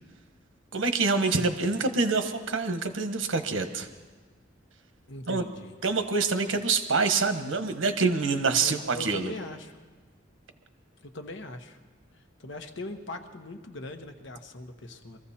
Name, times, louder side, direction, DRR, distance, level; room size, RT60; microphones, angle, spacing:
voice 1, 0.7-3.9 5.3-5.4 5.8-9.3, right 4 dB, 90° right, 8 dB, 1.2 m, -26 dB
voice 2, 5.1-5.8 8.6-9.8 11.0-11.8 12.2-15.2, left 2 dB, 70° left, 7 dB, 1.1 m, -40 dB
23.0 x 14.5 x 4.3 m, 1.4 s
head